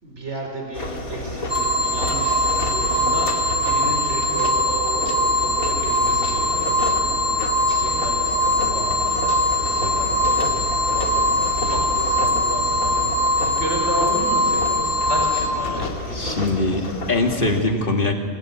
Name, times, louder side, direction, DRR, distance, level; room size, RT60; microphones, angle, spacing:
voice 1, 0.0-2.4 2.7-13.2 13.5-16.9, right 1 dB, 45° right, 1 dB, 5.3 m, -33 dB
sound 1, 0.7-17.6, left 2 dB, 65° left, 3.0 m, -30 dB
sound 2, 1.5-15.5, left 1 dB, 5° right, 5.2 m, -21 dB
voice 2, 16.1-18.1, left 2 dB, 35° left, 3 dB, 2.5 m, -22 dB
27.0 x 21.0 x 9.6 m, 2.1 s
omnidirectional pair, 1.6 m